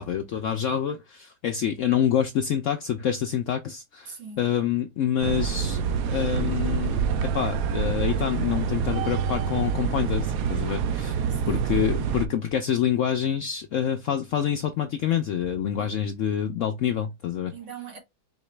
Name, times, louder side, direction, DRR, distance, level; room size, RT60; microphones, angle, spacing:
voice 1, 0.0-5.8 6.1-7.1 7.3-11.1 11.5-17.5, left 9 dB, 70° left, 0.7 m, -27 dB
voice 2, 4.1-4.6 11.2-11.6 15.7-16.0 17.5-18.0, right 5 dB, 90° right, 2.4 m, -41 dB
sound 1, 5.2-12.3, right 6 dB, 70° right, 0.9 m, -26 dB
4.7 x 2.9 x 3.2 m
omnidirectional pair, 1.8 m